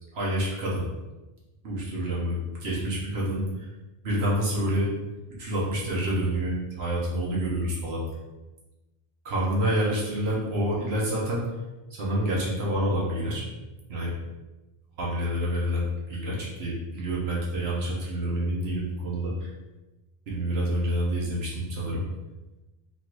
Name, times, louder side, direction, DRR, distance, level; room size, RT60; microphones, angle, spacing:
voice 1, 0.1-0.8 1.6-3.7 4.0-4.9 5.4-8.0 9.2-11.5 11.9-13.5 13.9-14.1 15.0-19.5 20.3-22.0, right 1 dB, 85° right, -5 dB, 1.2 m, -28 dB
3.8 x 2.5 x 4.5 m, 1.1 s
omnidirectional pair, 1.0 m